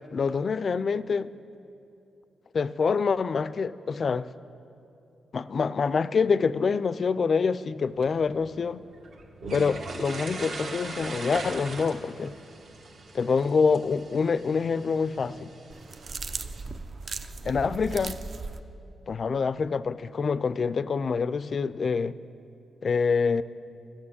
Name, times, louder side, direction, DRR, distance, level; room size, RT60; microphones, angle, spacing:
voice 1, 0.1-1.3 2.5-4.3 5.3-8.8 9.5-12.4 13.2-15.5 17.4-18.2 19.1-22.2 22.8-23.4, left 5 dB, 50° left, 17 dB, 0.3 m, -26 dB
sound 1, 7.8-16.6, right 3 dB, 65° right, 1.4 m, -41 dB
sound 2, 15.7-18.6, right 4 dB, 50° right, 0.5 m, -37 dB
11.0 x 8.9 x 8.4 m, 2.7 s
cardioid pair, 95°, 0 cm